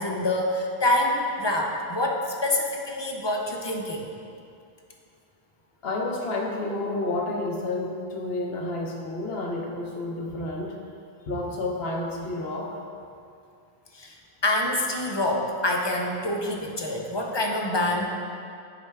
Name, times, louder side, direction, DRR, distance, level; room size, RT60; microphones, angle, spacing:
voice 1, 0.0-4.0 13.9-14.1 14.4-18.1, left 1 dB, 30° left, 0 dB, 0.6 m, -26 dB
voice 2, 5.8-10.7 11.3-12.7, left 2 dB, 75° left, 0 dB, 1.1 m, -30 dB
9.4 x 3.3 x 4.6 m, 2.4 s
omnidirectional pair, 1.0 m